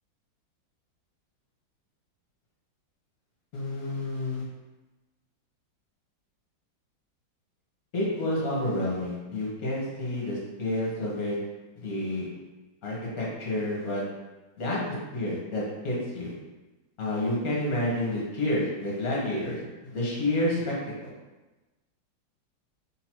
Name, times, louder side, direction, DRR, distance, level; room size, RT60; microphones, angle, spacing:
voice 1, 3.5-4.4 7.9-11.4 11.8-12.3 12.8-14.0 14.6-16.3 17.0-20.7, left 1 dB, 50° left, -5 dB, 1.5 m, -29 dB
3.7 x 2.9 x 4.4 m, 1.1 s
omnidirectional pair, 2.1 m